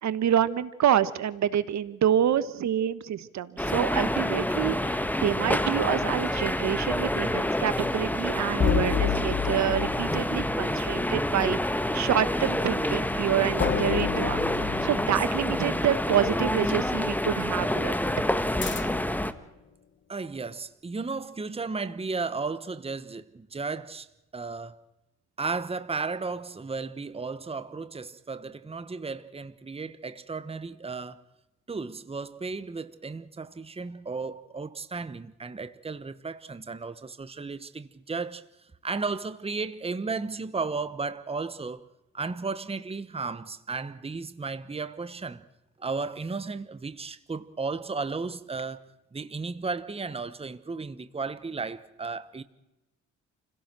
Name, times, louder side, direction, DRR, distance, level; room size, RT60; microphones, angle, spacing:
voice 1, 0.0-17.9, right 10 dB, 65° right, 1.4 m, -27 dB
sound 1, 3.6-19.3, left 1 dB, 5° left, 1.4 m, -28 dB
sound 2, 8.6-11.4 13.6-16.3 18.6-19.2, left 7 dB, 40° left, 1.3 m, -30 dB
voice 2, 20.1-24.1 24.3-24.8 25.4-31.2 31.7-38.4 38.8-41.9 42.1-45.5 45.8-48.8 49.1-52.4, right 4 dB, 20° right, 1.2 m, -34 dB
29.0 x 17.0 x 6.2 m
cardioid pair, 90°, 30 cm